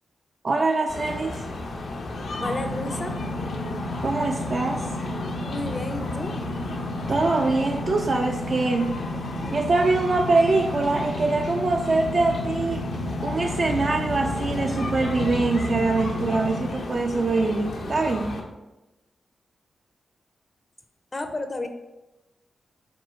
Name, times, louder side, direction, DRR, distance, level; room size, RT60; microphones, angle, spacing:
voice 1, 0.4-1.4 4.0-4.9 7.1-8.9 9.5-12.9 13.2-18.4, right 3 dB, 55° right, 2 dB, 0.3 m, -23 dB
sound 1, 0.9-18.4, left 2 dB, 75° left, 0.6 m, -33 dB
voice 2, 2.4-3.2 5.5-6.4 21.1-21.7, left 2 dB, 35° left, 7 dB, 0.5 m, -31 dB
sound 2, 2.4-16.7, left 1 dB, 90° right, 1.1 m, -34 dB
4.3 x 2.3 x 4.2 m, 1.0 s
cardioid pair, 65°, 0 cm